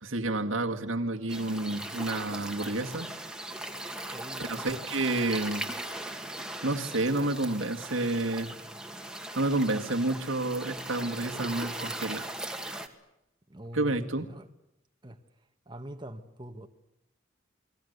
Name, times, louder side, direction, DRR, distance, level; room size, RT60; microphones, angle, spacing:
voice 1, 0.0-3.1 4.4-5.7 6.6-8.5 9.3-12.3 13.7-14.3, right 2 dB, 80° right, 2.2 m, -30 dB
sound 1, 1.3-12.9, right 1 dB, 5° right, 2.1 m, -39 dB
voice 2, 4.1-4.8 13.5-14.5 15.0-15.2 15.7-16.7, right 1 dB, 25° right, 1.5 m, -44 dB
29.5 x 21.0 x 8.2 m
head